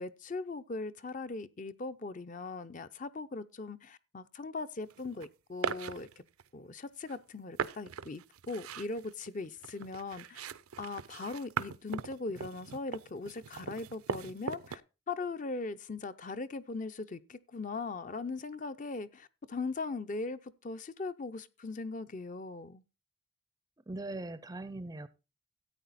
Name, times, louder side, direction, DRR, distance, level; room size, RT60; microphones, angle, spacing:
voice 1, 0.0-6.2 6.5-10.5 10.8-14.8 15.1-22.8, left 3 dB, 35° left, 0.5 m, -39 dB
sound 1, 4.9-5.3 5.6-6.5 7.1-7.2 7.6-14.8, right 6 dB, 85° right, 0.5 m, -40 dB
voice 2, 23.9-25.1, right 2 dB, 15° right, 0.5 m, -40 dB
13.5 x 8.8 x 4.1 m
head